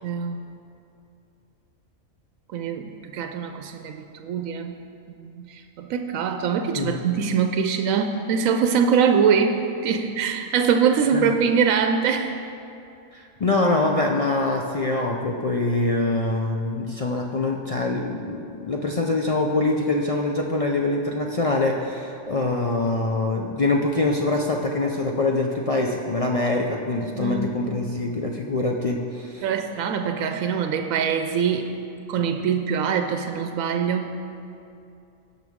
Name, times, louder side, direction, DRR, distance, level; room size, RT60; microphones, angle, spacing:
voice 1, 0.0-0.4 2.5-4.8 5.2-12.4 27.1-27.8 29.4-31.7 32.1-34.3, right 6 dB, 85° right, 6 dB, 1.0 m, -23 dB
voice 2, 13.1-29.4, left 2 dB, 65° left, 0 dB, 0.3 m, -24 dB
17.0 x 5.9 x 3.6 m, 2.6 s
omnidirectional pair, 1.4 m